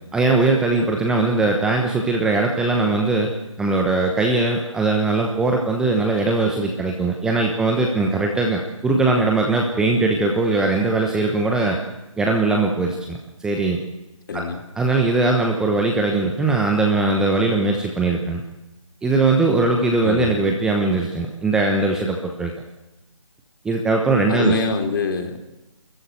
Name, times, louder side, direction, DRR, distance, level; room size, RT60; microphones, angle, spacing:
voice 1, 0.1-3.3 3.6-11.8 12.2-13.8 14.3-14.4 14.8-18.4 19.0-22.5 23.6-24.5, right 3 dB, 5° right, 1 dB, 1.1 m, -20 dB
voice 2, 14.3-14.6 20.0-20.4 24.3-25.4, left 3 dB, 40° left, 5 dB, 3.1 m, -24 dB
25.0 x 14.5 x 9.3 m, 1.0 s
figure-of-eight pair, 155°, 18 cm